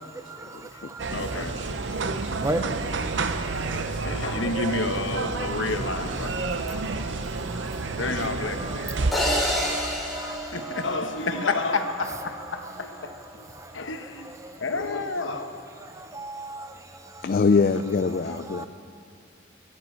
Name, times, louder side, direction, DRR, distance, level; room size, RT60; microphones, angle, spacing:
voice 1, 0.0-1.1 2.0-2.7 6.9-8.1 8.6-11.0 13.5-13.7 14.3-14.6 15.8-17.3 18.3-18.7, right 2 dB, 15° right, 0.6 m, -37 dB
sound 1, 1.0-9.1, right 3 dB, 70° right, 0.7 m, -29 dB
voice 2, 1.1-1.6 1.9-2.1 3.7-6.8 8.0-8.9 10.2-13.4 13.7-14.3 14.6-15.6 18.2-18.4, left 3 dB, 90° left, 1.1 m, -30 dB
sound 2, 9.1-11.5, equal, ahead, 2.6 m, -28 dB
voice 3, 17.2-18.7, left 4 dB, 50° left, 0.4 m, -22 dB
24.0 x 11.0 x 4.4 m
head